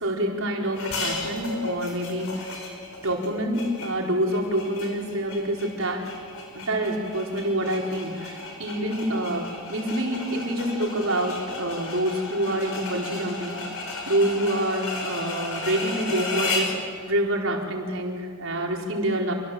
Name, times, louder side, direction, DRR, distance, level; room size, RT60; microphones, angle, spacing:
voice 1, 0.0-2.6 3.0-6.1 6.5-13.6 14.1-19.3, right 1 dB, 65° right, 0 dB, 4.3 m, -27 dB
sound 1, 0.8-16.8, left 3 dB, 75° left, 5.5 m, -34 dB
27.5 x 24.5 x 7.8 m, 2.2 s
head